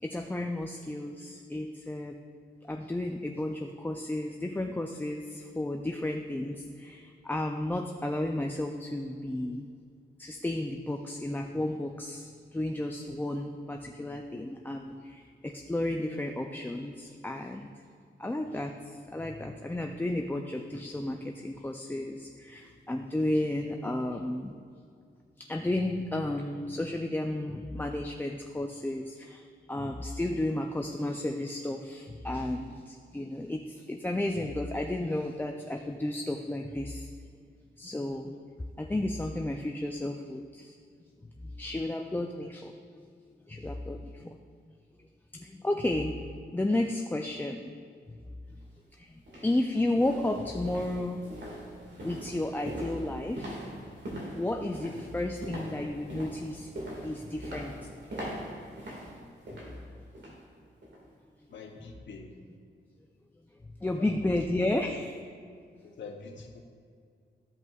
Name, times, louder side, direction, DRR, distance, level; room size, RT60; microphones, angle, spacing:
voice 1, 0.0-2.2 2.7-9.7 10.2-17.7 18.2-24.6 25.4-37.1 37.8-38.3 38.8-40.8 41.4-42.7 43.5-44.4 45.3-46.2 46.5-47.7 49.0-51.2 51.9-53.6 54.4-56.7 57.0-57.9 63.8-65.2, left 1 dB, 10° left, 3 dB, 0.4 m, -33 dB
sound 1, 48.5-48.6 49.2-60.5 60.8-61.1 61.5-61.6, equal, 75° right, 1.9 m, -42 dB
voice 2, 61.5-62.3 64.0-64.1 64.7-64.9 66.0-66.6, left 4 dB, 85° left, 0 dB, 0.8 m, -45 dB
14.0 x 5.4 x 2.4 m, 2.2 s
wide cardioid pair, 90°, 19 cm